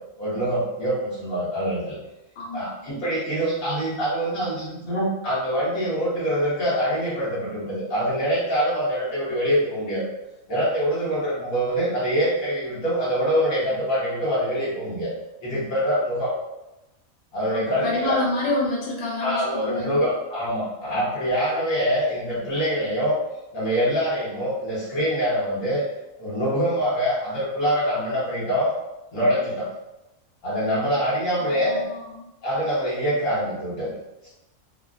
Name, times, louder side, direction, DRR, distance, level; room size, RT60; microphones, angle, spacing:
voice 1, 0.2-1.9 2.5-10.0 10.5-15.1 15.4-16.3 17.3-18.2 19.2-23.2 23.5-25.8 26.2-28.7 29.1-29.7 30.4-31.8 32.4-33.9 34.2-34.3, equal, 75° left, -9 dB, 1.7 m, -24 dB
voice 2, 2.4-2.7 17.5-20.0 31.4-32.2, left 2 dB, 55° left, -4 dB, 1.0 m, -28 dB
3.8 x 2.1 x 2.4 m, 0.94 s
omnidirectional pair, 1.4 m